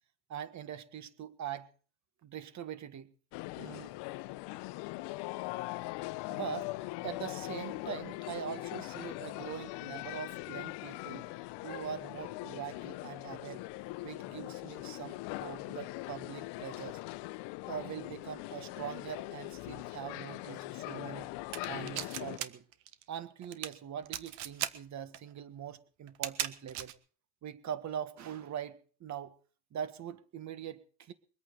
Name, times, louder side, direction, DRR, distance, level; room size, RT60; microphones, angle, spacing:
voice 1, 0.3-1.7 2.2-3.1 3.6-4.0 6.3-6.7 7.0-11.3 11.6-13.6 14.0-17.0 17.7-21.3 21.7-22.6 23.1-26.9 27.4-29.3 29.7-31.1, right 9 dB, 40° right, 13 dB, 1.8 m, -42 dB
sound 1, 3.3-22.4, left 21 dB, 65° left, 0.9 m, -41 dB
sound 2, 21.5-22.5 22.7-23.0 23.4-23.7 24.1-24.7 25.1-25.2 26.1-26.9, right 13 dB, 75° right, 1.6 m, -36 dB
23.5 x 8.8 x 6.7 m, 0.42 s
supercardioid pair, 115°, 45 cm